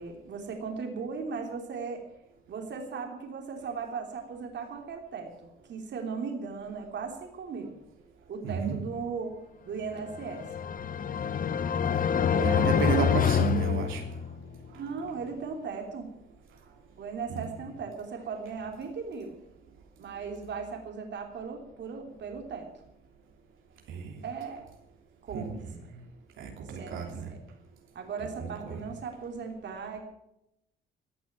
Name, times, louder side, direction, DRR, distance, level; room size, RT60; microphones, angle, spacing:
voice 1, 0.0-2.0 2.5-5.3 5.7-7.8 8.3-9.4 9.6-10.5 12.3-13.1 14.7-16.1 17.0-19.4 20.0-22.7 24.2-24.6 25.2-25.6 26.6-27.4 27.9-30.0, right 5 dB, 65° right, 3 dB, 3.1 m, -37 dB
voice 2, 8.4-8.8 12.4-14.0 14.7-14.8 17.3-17.4 23.9-24.2 25.3-26.0 26.4-27.3 28.4-28.8, right 6 dB, 85° right, 2 dB, 3.2 m, -32 dB
sound 1, 10.1-14.5, left 8 dB, 45° left, 0.8 m, -27 dB
16.0 x 8.8 x 9.0 m, 0.83 s
cardioid pair, 90°, 20 cm